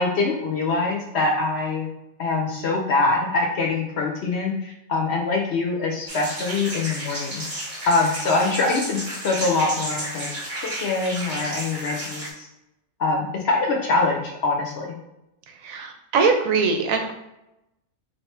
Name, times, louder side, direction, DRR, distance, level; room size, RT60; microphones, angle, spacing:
voice 1, 0.0-1.9 2.2-7.4 7.9-10.3 10.6-12.5 13.0-14.9, left 3 dB, 60° left, 0 dB, 0.8 m, -24 dB
sound 1, 6.1-12.3, right 1 dB, 30° right, 1.1 m, -32 dB
voice 2, 15.5-17.1, right 4 dB, 75° right, 4 dB, 1.0 m, -22 dB
3.5 x 3.1 x 3.2 m, 0.90 s
omnidirectional pair, 1.5 m